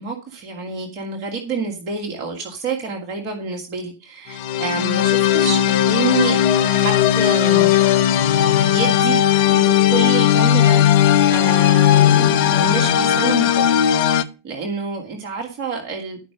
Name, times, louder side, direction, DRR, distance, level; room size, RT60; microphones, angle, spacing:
voice 1, 0.0-8.2 8.5-9.2 9.5-10.9 11.2-13.7 14.0-16.2, right 4 dB, 40° right, 0 dB, 2.7 m, -28 dB
sound 1, 4.3-14.2, left 10 dB, 50° left, 0.9 m, -16 dB
12.0 x 6.3 x 5.1 m, 0.32 s
figure-of-eight pair, 90°, 0 cm